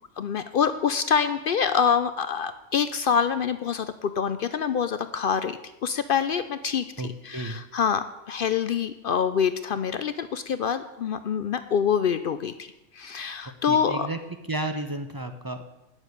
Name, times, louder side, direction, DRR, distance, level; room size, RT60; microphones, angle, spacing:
voice 1, 0.2-12.7 12.9-14.1, left 7 dB, 60° left, 12 dB, 0.6 m, -26 dB
voice 2, 7.0-7.6 13.7-14.2 14.5-15.6, right 1 dB, 25° right, 7 dB, 0.5 m, -32 dB
9.9 x 7.2 x 6.5 m, 0.92 s
omnidirectional pair, 1.3 m